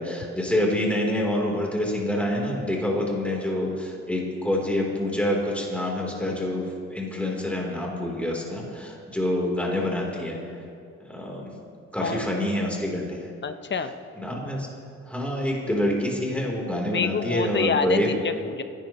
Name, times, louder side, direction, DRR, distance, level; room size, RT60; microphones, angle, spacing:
voice 1, 0.0-6.6 6.9-10.4 11.1-11.5 11.9-13.2 14.2-14.7 15.1-18.1, left 1 dB, 5° left, -2 dB, 3.5 m, -26 dB
voice 2, 13.4-13.9 16.9-18.6, left 6 dB, 35° left, 9 dB, 0.8 m, -27 dB
25.5 x 11.0 x 3.1 m, 2.3 s
cardioid pair, 90°, 30 cm